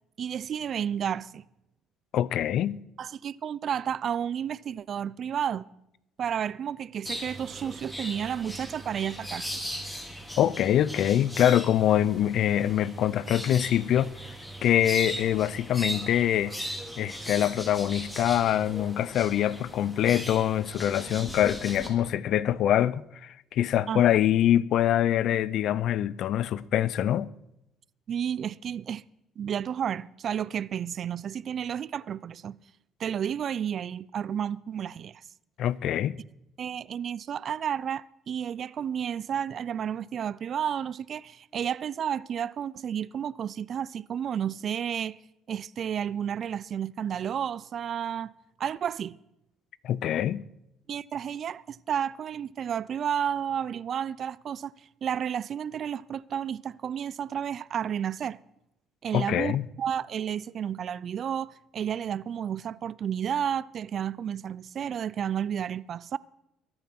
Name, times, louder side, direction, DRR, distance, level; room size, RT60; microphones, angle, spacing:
voice 1, 0.2-1.4 3.0-5.7 6.2-9.6 23.9-24.1 28.1-29.0 29.4-32.6 33.0-35.2 36.6-45.2 45.5-48.3 48.6-49.2 50.9-54.7 55.0-58.4 59.0-66.2, right 8 dB, 50° right, 0.4 m, -31 dB
voice 2, 2.1-2.8 10.4-14.1 14.6-27.3 35.6-36.2 49.8-50.4 59.1-59.6, left 11 dB, 65° left, 0.5 m, -24 dB
sound 1, 7.0-21.9, equal, 5° left, 3.5 m, -38 dB
22.0 x 8.8 x 6.0 m
cardioid pair, 95°, 0 cm